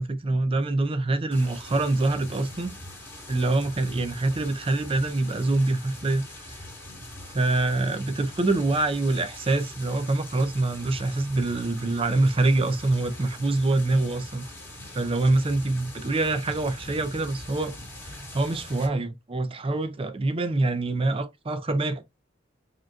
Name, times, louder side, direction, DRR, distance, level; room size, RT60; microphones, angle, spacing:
voice 1, 0.0-2.8 3.3-6.2 7.3-14.4 14.9-17.7 18.0-22.0, right 2 dB, 30° right, 0.5 m, -25 dB
sound 1, 1.3-18.9, left 1 dB, 10° left, 2.2 m, -42 dB
4.9 x 3.0 x 2.3 m
head